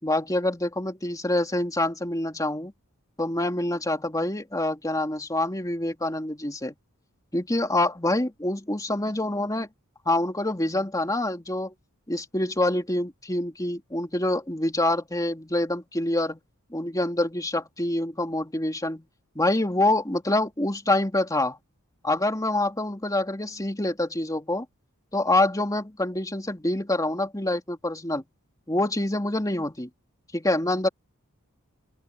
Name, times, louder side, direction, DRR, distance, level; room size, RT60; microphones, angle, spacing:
voice 1, 0.0-2.7 3.2-6.7 7.3-9.7 10.0-11.7 12.1-16.4 16.7-19.0 19.3-21.6 22.0-24.6 25.1-28.2 28.7-29.9 30.3-30.9, left 1 dB, 15° left, 3.0 m, -26 dB
open air
head